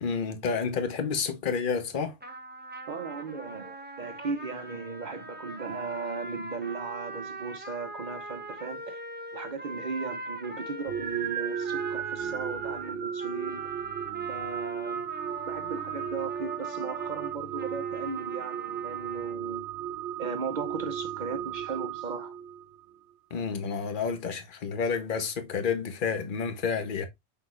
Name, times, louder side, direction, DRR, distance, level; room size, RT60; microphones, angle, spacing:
voice 1, 0.0-2.1 23.3-27.0, left 5 dB, 50° left, 1.0 m, -30 dB
sound 1, 2.2-19.4, right 1 dB, 10° right, 0.6 m, -42 dB
voice 2, 2.9-9.0 9.3-13.6 14.3-15.0 15.5-19.7 20.2-22.4, right 4 dB, 45° right, 0.7 m, -37 dB
sound 2, 10.9-22.9, right 9 dB, 85° right, 0.9 m, -35 dB
5.9 x 3.8 x 2.4 m
omnidirectional pair, 1.2 m